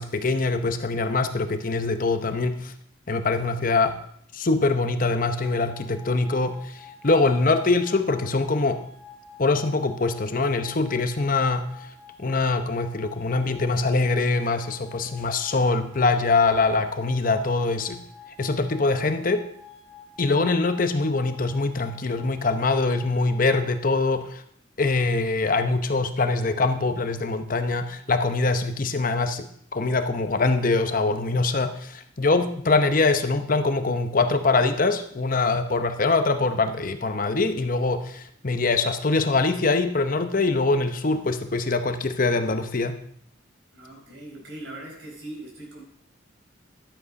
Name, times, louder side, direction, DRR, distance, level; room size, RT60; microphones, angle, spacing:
voice 1, 0.0-2.7 3.1-3.9 4.3-8.8 9.4-11.7 12.2-18.0 18.4-19.5 20.2-24.4 24.8-29.5 29.7-43.0, left 3 dB, 45° left, 8 dB, 0.8 m, -23 dB
sound 1, 5.2-23.7, left 6 dB, 75° left, 1.7 m, -48 dB
voice 2, 43.7-45.8, right 1 dB, 60° right, -1 dB, 5.0 m, -40 dB
12.5 x 8.4 x 5.2 m, 0.66 s
head